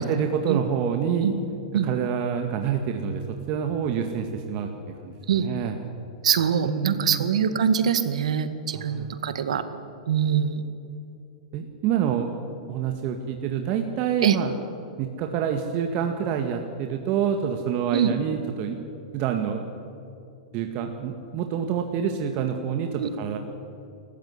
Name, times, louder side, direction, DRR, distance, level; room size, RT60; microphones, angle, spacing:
voice 1, 0.0-1.4 1.8-3.2 3.5-4.7 5.0-5.8 6.6-7.3 8.7-9.1 11.5-12.3 12.7-14.5 15.0-18.8 19.1-19.6 20.5-23.4, right 8 dB, 45° right, 4 dB, 2.0 m, -27 dB
voice 2, 6.2-9.6 10.1-10.6 14.2-14.4 17.9-18.1 23.0-23.1, right 8 dB, 80° right, 11 dB, 1.9 m, -23 dB
29.0 x 14.5 x 9.7 m, 2.6 s
hypercardioid pair, 130°, 3 cm